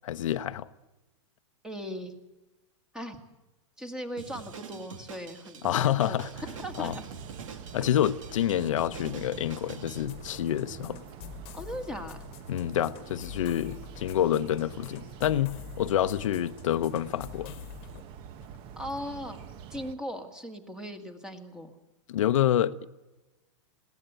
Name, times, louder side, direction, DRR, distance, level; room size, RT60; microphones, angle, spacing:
voice 1, 0.0-0.7 5.6-6.3 6.8-7.0 7.7-11.0 12.5-17.6 22.1-22.9, left 11 dB, 80° left, 0.8 m, -27 dB
voice 2, 1.6-2.1 2.9-3.2 3.8-6.2 6.6-7.0 11.5-12.2 18.8-21.7, equal, 5° right, 1.7 m, -38 dB
Drum kit, 4.2-10.0, right 6 dB, 90° right, 2.2 m, -45 dB
sound 1, 6.3-19.9, right 8 dB, 35° right, 0.9 m, -46 dB
sound 2, 10.0-18.0, left 12 dB, 35° left, 1.3 m, -47 dB
21.5 x 17.0 x 8.0 m
supercardioid pair, 150°, 16 cm